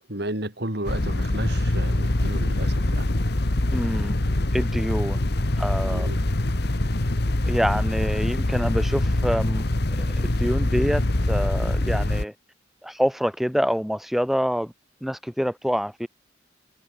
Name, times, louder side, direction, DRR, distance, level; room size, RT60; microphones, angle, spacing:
voice 1, 0.1-3.1 5.9-6.2, right 1 dB, 65° right, 5.6 m, -32 dB
sound 1, 0.8-12.2, left 1 dB, 65° left, 1.4 m, -24 dB
voice 2, 3.7-4.2 4.5-5.3 5.6-6.2 7.5-12.3 12.8-14.7 15.0-16.1, equal, ahead, 3.6 m, -26 dB
head